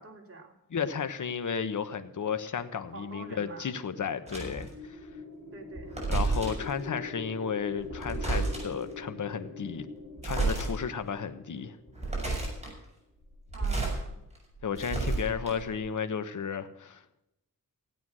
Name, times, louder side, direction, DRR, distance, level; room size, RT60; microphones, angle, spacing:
voice 1, 0.0-0.5 2.9-3.7 5.5-6.0 6.9-7.0 13.5-14.2, right 2 dB, 40° right, 1 dB, 3.4 m, -46 dB
voice 2, 0.7-5.1 6.1-9.9 10.2-11.8 14.6-17.0, left 6 dB, 55° left, 10 dB, 1.2 m, -33 dB
sound 1, 4.2-12.6, left 3 dB, ahead, 6.6 m, -44 dB
sound 2, 4.3-4.7 5.7-6.7 7.8-8.8 10.2-10.7 11.2-11.3 11.9-12.7 13.4-14.0 14.4-15.8, right 3 dB, 20° right, 6.9 m, -31 dB
16.5 x 9.2 x 6.4 m, 0.86 s
cardioid pair, 85°, 35 cm